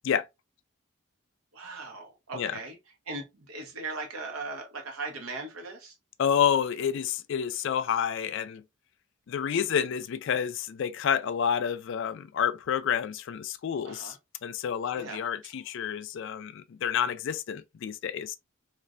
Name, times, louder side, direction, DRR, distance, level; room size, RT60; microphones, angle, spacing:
voice 1, 1.5-2.8 3.1-5.9 13.8-14.2 14.9-15.5, right 3 dB, 80° right, 0.9 m, -39 dB
voice 2, 6.2-8.6 9.3-14.2 14.4-18.4, left 8 dB, 60° left, 0.3 m, -29 dB
3.2 x 2.4 x 2.4 m
head